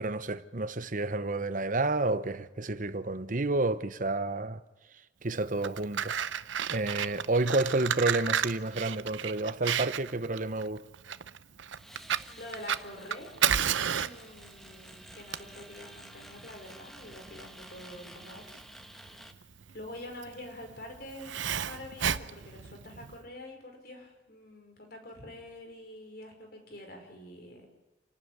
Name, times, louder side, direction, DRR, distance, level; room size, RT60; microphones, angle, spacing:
voice 1, 0.0-4.6 5.2-6.2 6.7-10.9, right 2 dB, 45° right, 0.9 m, -30 dB
Fire, 5.4-23.2, right 8 dB, 90° right, 0.8 m, -33 dB
sound 1, 11.8-19.3, equal, ahead, 1.4 m, -51 dB
voice 2, 12.4-13.3 14.0-18.6 19.7-27.7, left 1 dB, 55° left, 5.3 m, -46 dB
28.0 x 12.0 x 9.6 m
head